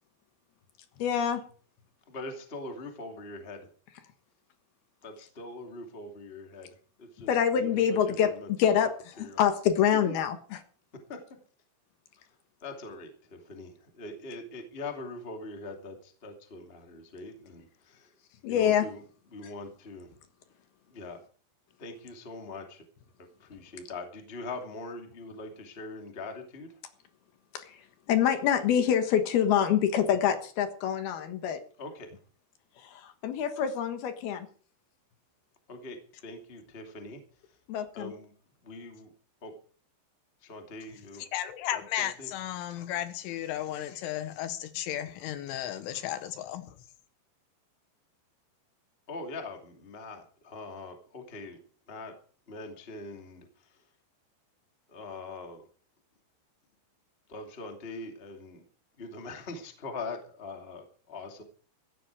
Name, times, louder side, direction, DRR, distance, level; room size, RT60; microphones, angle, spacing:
voice 1, 1.0-1.4 7.3-8.9 9.2-10.6 18.4-18.9 27.5-27.8 28.1-31.6 32.8-34.5 37.7-38.1, left 9 dB, 65° left, 3.0 m, -26 dB
voice 2, 2.1-3.7 5.0-6.7 7.0-8.8 9.2-9.4 10.1-10.2 11.1-11.2 12.6-18.1 18.5-19.0 19.3-20.1 20.9-21.2 21.8-22.8 23.2-26.8 31.8-32.1 35.7-37.2 37.5-37.6 37.9-38.3 38.6-39.1 39.4-39.5 40.4-41.2 41.7-42.3 49.1-51.6 51.9-52.1 52.5-53.8 54.9-55.7 57.3-58.6 59.0-61.4, left 2 dB, 20° left, 1.5 m, -42 dB
voice 3, 41.3-46.7, left 12 dB, 85° left, 3.7 m, -34 dB
16.0 x 13.5 x 4.7 m
omnidirectional pair, 5.5 m